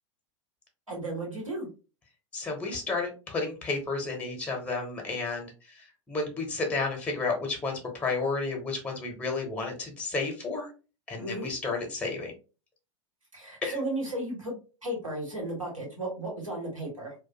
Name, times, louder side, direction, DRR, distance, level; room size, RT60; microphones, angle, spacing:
voice 1, 0.9-1.7 11.2-11.5 13.3-14.5 14.8-17.1, right 1 dB, 90° right, -2 dB, 1.1 m, -34 dB
voice 2, 2.3-10.7 11.1-12.3 13.6-13.8, left 3 dB, 10° left, 2 dB, 0.7 m, -32 dB
2.3 x 2.2 x 2.7 m, 0.33 s
figure-of-eight pair, 90°, 16 cm